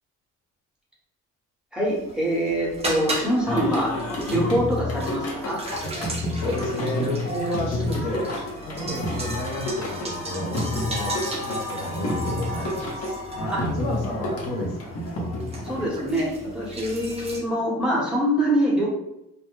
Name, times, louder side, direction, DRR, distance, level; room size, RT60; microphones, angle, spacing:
voice 1, 1.7-3.9 4.2-5.6 13.5-13.6 15.6-18.9, equal, 5° right, -5 dB, 0.9 m, -24 dB
sound 1, 1.9-17.4, equal, 20° right, 0.6 m, -35 dB
Singing, 3.5-15.8, left 1 dB, 55° left, 0.8 m, -30 dB
voice 2, 6.1-8.3 8.6-15.0, left 1 dB, 85° left, -2 dB, 0.8 m, -31 dB
2.2 x 2.1 x 3.0 m, 0.86 s
cardioid pair, 90°, 30 cm